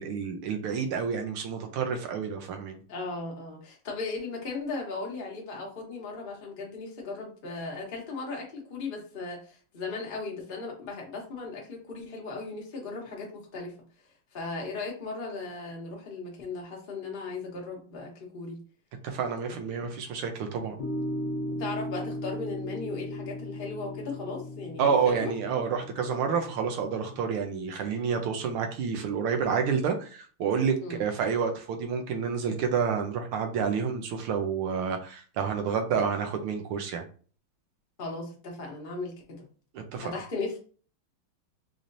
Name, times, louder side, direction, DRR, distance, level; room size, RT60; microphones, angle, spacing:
voice 1, 0.0-2.8 19.0-20.8 24.8-37.1 39.7-40.1, right 6 dB, 80° right, 4 dB, 1.7 m, -29 dB
voice 2, 2.9-13.7 14.3-18.6 21.6-25.3 30.8-31.1 38.0-39.4 40.0-40.6, left 3 dB, 35° left, -2 dB, 0.9 m, -37 dB
sound 1, 20.8-27.2, left 1 dB, 60° left, 1.5 m, -37 dB
4.8 x 2.8 x 2.6 m, 0.40 s
omnidirectional pair, 2.4 m